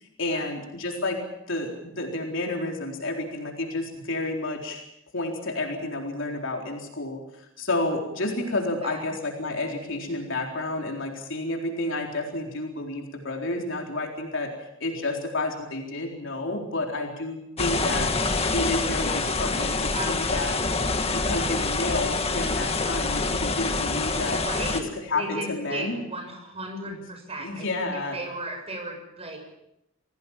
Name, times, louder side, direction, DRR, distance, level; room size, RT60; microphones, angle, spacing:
voice 1, 0.2-1.2 1.5-4.8 5.1-14.5 14.8-18.1 18.5-20.6 21.1-24.4 24.7-26.0 26.9-27.0 27.4-28.2, left 2 dB, 65° left, 1 dB, 4.1 m, -30 dB
sound 1, 17.6-24.8, left 3 dB, 30° left, 1.9 m, -26 dB
voice 2, 24.4-27.7 27.9-29.5, right 1 dB, 30° right, 4 dB, 7.1 m, -35 dB
27.0 x 17.5 x 7.3 m, 0.84 s
head